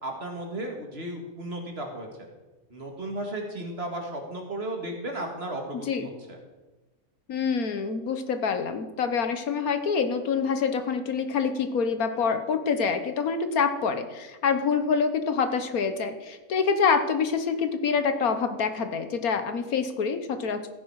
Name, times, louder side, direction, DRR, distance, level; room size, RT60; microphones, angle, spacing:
voice 1, 0.0-2.3 2.7-6.4, right 1 dB, 40° right, 2 dB, 2.1 m, -35 dB
voice 2, 7.3-20.7, left 5 dB, 70° left, 9 dB, 1.5 m, -26 dB
15.0 x 10.0 x 4.7 m, 1.1 s
omnidirectional pair, 1.6 m